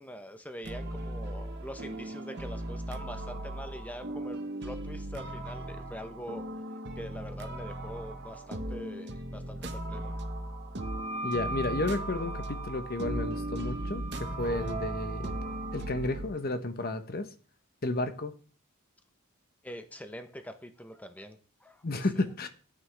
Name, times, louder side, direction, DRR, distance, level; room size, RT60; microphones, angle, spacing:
voice 1, 0.0-6.4 7.0-10.1 19.6-22.2, equal, 5° left, 0.9 m, -44 dB
sound 1, 0.6-16.3, right 1 dB, 55° right, 1.2 m, -37 dB
Wind instrument woodwind instrument, 10.8-15.7, right 2 dB, 70° left, 5.4 m, -40 dB
voice 2, 11.2-15.3 15.7-17.3 17.8-18.3 21.8-22.5, left 2 dB, 45° left, 1.0 m, -32 dB
sound 2, 14.4-16.0, right 6 dB, 35° right, 2.5 m, -43 dB
13.5 x 9.2 x 3.5 m
head